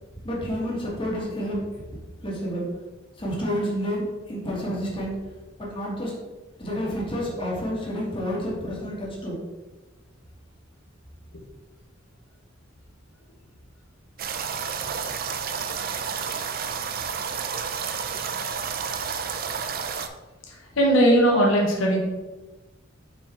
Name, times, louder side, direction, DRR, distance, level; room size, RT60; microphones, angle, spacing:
voice 1, 0.2-1.6 2.2-2.7 3.2-5.2 5.6-6.1 6.6-9.4, equal, 25° left, -4 dB, 1.9 m, -29 dB
sound 1, 14.2-20.1, right 6 dB, 50° right, 0.5 m, -30 dB
voice 2, 20.5-22.0, right 1 dB, 80° left, -1 dB, 1.3 m, -19 dB
5.7 x 4.7 x 4.3 m, 1.2 s
head